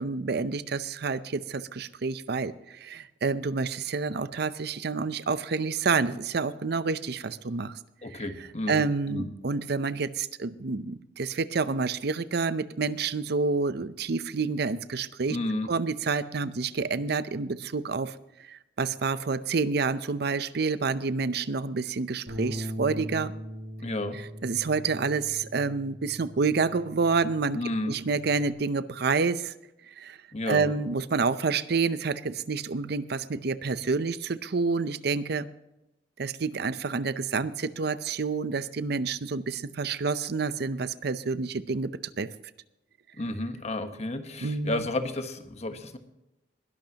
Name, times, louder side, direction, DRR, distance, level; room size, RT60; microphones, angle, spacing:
voice 1, 0.0-7.8 8.1-8.2 8.7-15.4 15.7-18.1 18.5-23.3 24.4-27.6 27.9-29.5 30.0-30.2 30.5-35.5 36.2-41.9 42.2-42.3 44.4-44.8, right 4 dB, 60° right, 14 dB, 0.6 m, -28 dB
voice 2, 8.0-8.8 9.1-9.3 15.3-15.7 23.8-24.2 27.5-28.0 30.3-30.7 43.2-46.0, left 2 dB, 40° left, 8 dB, 1.2 m, -32 dB
Bass guitar, 22.3-28.5, equal, 85° right, 5.8 m, -40 dB
20.5 x 12.0 x 2.9 m, 0.92 s
head